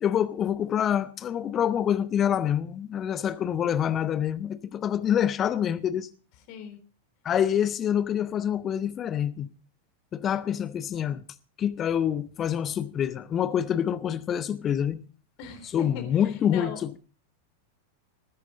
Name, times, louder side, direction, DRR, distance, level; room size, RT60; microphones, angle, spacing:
voice 1, 0.0-6.1 7.2-9.5 10.1-11.2 11.6-15.0 15.7-16.7, left 9 dB, 25° left, 1.0 m, -26 dB
voice 2, 6.5-6.8 15.4-17.0, left 6 dB, 45° left, 3.6 m, -39 dB
19.5 x 9.6 x 3.9 m
figure-of-eight pair, 90°, 0 cm